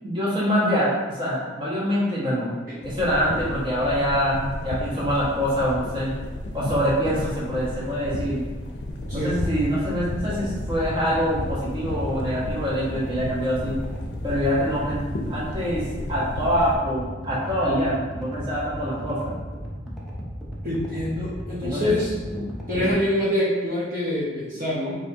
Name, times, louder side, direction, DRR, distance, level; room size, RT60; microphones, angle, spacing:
voice 1, 0.0-2.5 2.8-6.1 6.5-8.5 9.1-13.8 14.2-19.3 21.6-21.9 22.3-22.5 22.8-22.9, equal, 25° right, -7 dB, 1.1 m, -25 dB
sound 1, 2.8-16.8, left 1 dB, 65° left, 0.5 m, -33 dB
sound 2, 8.9-22.9, equal, ahead, 0.6 m, -35 dB
voice 2, 20.6-22.1 22.7-25.0, left 1 dB, 45° right, -8 dB, 0.8 m, -25 dB
4.2 x 2.7 x 3.5 m, 1.3 s
head